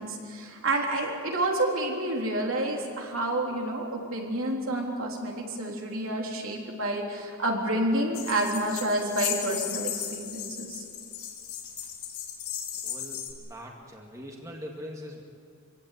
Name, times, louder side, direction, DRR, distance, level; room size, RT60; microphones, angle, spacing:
voice 1, 0.0-10.8, right 1 dB, 65° right, 0 dB, 3.6 m, -29 dB
sound 1, 8.1-13.3, left 9 dB, 85° left, 3.5 m, -35 dB
voice 2, 12.8-15.2, equal, 15° right, 0 dB, 2.1 m, -42 dB
25.5 x 16.5 x 9.4 m, 2.2 s
head